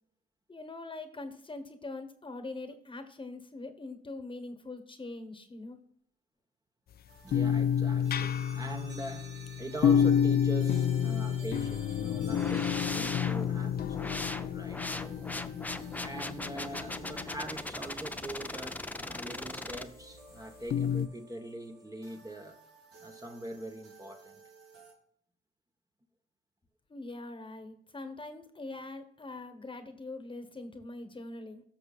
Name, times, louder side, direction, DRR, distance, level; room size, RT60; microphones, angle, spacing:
voice 1, 0.5-5.8 26.9-31.6, left 2 dB, 25° left, 1.3 m, -43 dB
sound 1, 7.1-24.9, right 4 dB, 60° right, 3.4 m, -54 dB
voice 2, 7.2-15.3 16.0-22.6 23.0-24.3, right 1 dB, 20° right, 1.1 m, -43 dB
sound 2, 7.3-17.6 20.7-21.1, left 8 dB, 50° left, 0.5 m, -29 dB
sound 3, 12.3-19.8, left 2 dB, 10° left, 0.6 m, -39 dB
13.5 x 6.2 x 2.4 m
cardioid pair, 90°, 20 cm